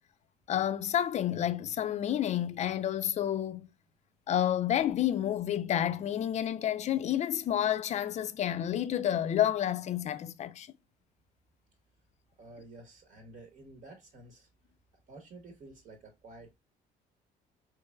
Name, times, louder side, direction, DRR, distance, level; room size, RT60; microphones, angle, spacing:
voice 1, 0.5-3.7 4.3-10.7, left 10 dB, 40° left, 0.4 m, -30 dB
voice 2, 12.4-14.5 15.1-16.5, right 2 dB, 55° right, 0.9 m, -51 dB
4.4 x 3.1 x 2.2 m
cardioid pair, 110°, 17 cm